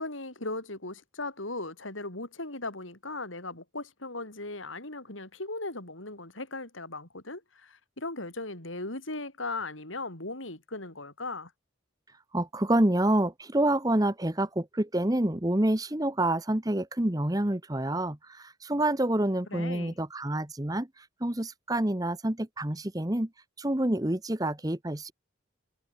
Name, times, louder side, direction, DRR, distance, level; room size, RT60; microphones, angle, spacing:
voice 1, 0.0-11.5 19.5-19.9, left 2 dB, 85° left, 6.4 m, -38 dB
voice 2, 12.3-20.9 21.2-23.3 23.6-25.1, right 1 dB, 20° right, 1.1 m, -27 dB
head